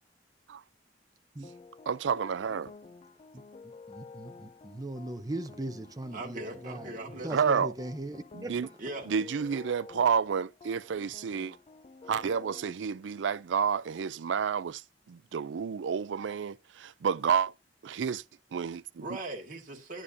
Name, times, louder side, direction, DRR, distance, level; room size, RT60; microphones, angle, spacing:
sound 1, 1.4-12.7, left 4 dB, 35° left, 0.4 m, -51 dB
voice 1, 1.9-2.7 7.3-7.7 8.3-8.7 9.1-11.6 12.1-14.8 15.1-17.5 17.8-18.2 18.5-19.0, right 6 dB, 75° right, 0.4 m, -30 dB
voice 2, 3.6-6.9 7.2-8.7, right 1 dB, 20° right, 0.7 m, -39 dB
voice 3, 6.1-7.5 8.8-9.1 19.0-20.0, right 2 dB, 50° right, 1.8 m, -40 dB
10.0 x 9.9 x 2.7 m
head